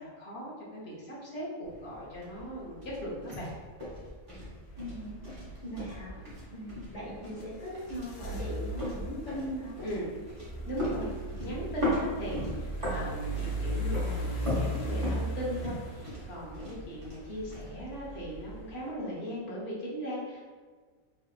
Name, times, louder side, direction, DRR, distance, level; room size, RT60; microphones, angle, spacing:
voice 1, 0.0-3.5 9.8-10.1 10.6-11.1 11.4-20.5, equal, 55° left, -5 dB, 1.0 m, -38 dB
sound 1, 1.6-18.6, left 1 dB, 25° right, 0.9 m, -39 dB
sound 2, 4.7-18.9, right 1 dB, 75° left, 1.1 m, -38 dB
voice 2, 4.8-9.7, equal, 30° left, -8 dB, 1.2 m, -40 dB
3.2 x 2.8 x 2.4 m, 1.5 s
omnidirectional pair, 1.5 m